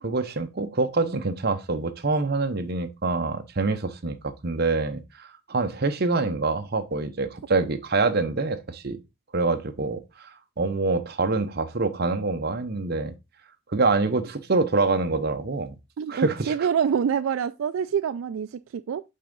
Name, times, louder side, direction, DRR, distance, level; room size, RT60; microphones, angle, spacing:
voice 1, 0.0-9.0 9.3-13.1 13.7-15.7 16.1-16.7, right 3 dB, 50° right, 0.8 m, -26 dB
voice 2, 16.0-19.0, right 7 dB, 85° right, 0.3 m, -26 dB
5.6 x 3.7 x 5.3 m
head